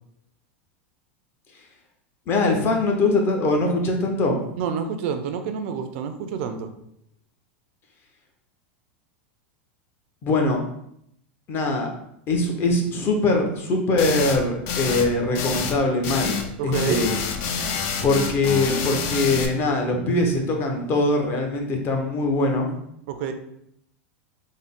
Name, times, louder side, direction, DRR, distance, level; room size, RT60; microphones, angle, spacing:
voice 1, 2.3-4.4 10.2-10.6 11.5-11.9 12.3-17.2 18.0-22.7, left 2 dB, 35° left, 2 dB, 0.8 m, -22 dB
voice 2, 4.6-6.7 16.6-17.1 23.1-23.3, right 7 dB, 65° right, 8 dB, 0.4 m, -28 dB
sound 1, 14.0-14.4 14.7-15.1 15.3-15.8 16.0-16.5 16.7-19.5, left 5 dB, 55° left, 0.5 m, -27 dB
3.7 x 2.0 x 3.6 m, 0.74 s
hypercardioid pair, 115°, 7 cm